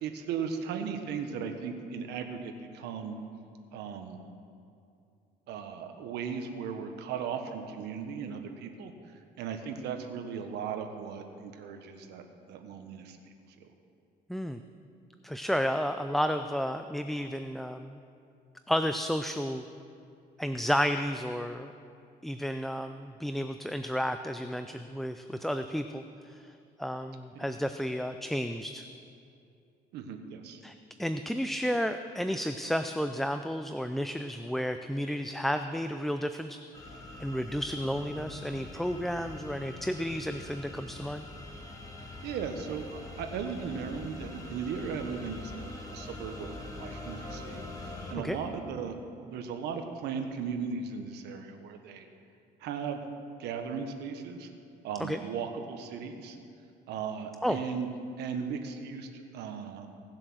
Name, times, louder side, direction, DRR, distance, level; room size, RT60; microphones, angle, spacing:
voice 1, 0.0-3.2 3.7-4.2 5.5-8.9 9.4-13.2 13.6-13.7 27.3-27.5 29.9-30.6 42.0-52.1 52.6-53.0 53.4-54.5 54.8-56.4 56.9-57.9 58.2-59.9, right 6 dB, 80° right, 6 dB, 1.3 m, -37 dB
voice 2, 14.3-14.6 15.2-18.0 18.7-19.6 20.4-21.7 22.2-26.5 26.8-28.8 30.6-41.2 48.1-48.4 55.0-55.2 57.4-57.6, equal, ahead, 8 dB, 0.4 m, -32 dB
sound 1, 36.7-48.1, left 2 dB, 20° left, 2.0 m, -43 dB
18.0 x 7.6 x 6.3 m, 2.5 s
cardioid pair, 110°, 17 cm